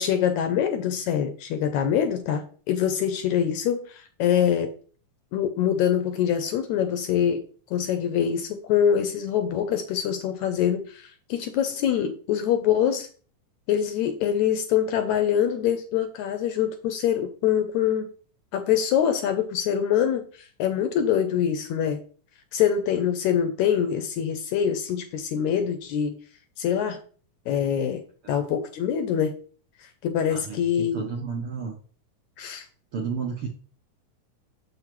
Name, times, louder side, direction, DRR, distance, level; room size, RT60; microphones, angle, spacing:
voice 1, 0.0-4.7 5.3-7.4 7.7-13.1 13.7-18.1 18.5-22.0 22.5-26.2 26.6-27.0 27.5-28.0 28.3-29.3 29.8-31.0 32.4-32.7, left 9 dB, 80° left, 8 dB, 1.7 m, -24 dB
voice 2, 30.3-31.7 32.9-33.5, right 5 dB, 65° right, -1 dB, 1.3 m, -32 dB
7.1 x 5.9 x 3.0 m, 0.42 s
omnidirectional pair, 3.7 m